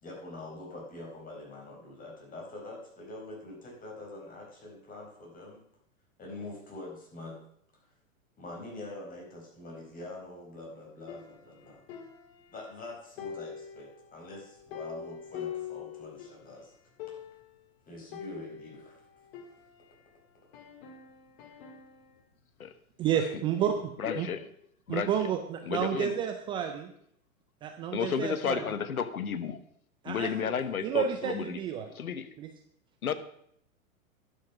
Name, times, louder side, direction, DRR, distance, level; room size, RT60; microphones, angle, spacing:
voice 1, 0.0-5.6 6.2-7.4 7.8-7.9 8.4-11.8 12.5-16.8 17.9-19.0, left 2 dB, 20° left, -1 dB, 4.6 m, -44 dB
sound 1, 11.1-12.8 13.2-16.5 16.7-16.8 17.0-17.6 18.1-20.1 20.5-22.2, left 8 dB, 45° left, 2.0 m, -44 dB
voice 2, 23.0-23.8 24.2-24.3 24.9-26.9 27.6-28.6 30.0-30.5 30.8-31.9 32.4-32.5, right 9 dB, 15° right, 6 dB, 0.3 m, -30 dB
voice 3, 24.0-24.5 24.9-25.3 25.6-26.2 27.9-29.6 30.0-31.6 31.9-32.3 33.0-33.1, left 7 dB, 85° left, 11 dB, 1.2 m, -32 dB
11.5 x 7.3 x 6.1 m, 0.69 s
hypercardioid pair, 115°, 42 cm